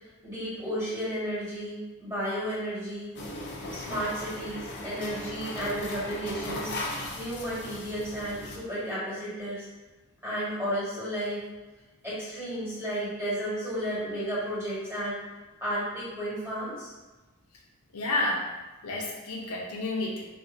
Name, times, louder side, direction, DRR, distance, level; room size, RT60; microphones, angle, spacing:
voice 1, 0.2-3.2 3.7-6.7 7.1-9.7 10.2-11.4 12.0-15.2 15.6-16.9, equal, 10° right, -10 dB, 1.4 m, -33 dB
sound 1, 3.2-8.6, left 1 dB, 50° left, 0.5 m, -37 dB
voice 2, 17.9-18.5 18.8-20.3, left 2 dB, 85° left, -3 dB, 0.7 m, -30 dB
4.0 x 2.4 x 2.6 m, 1.2 s
head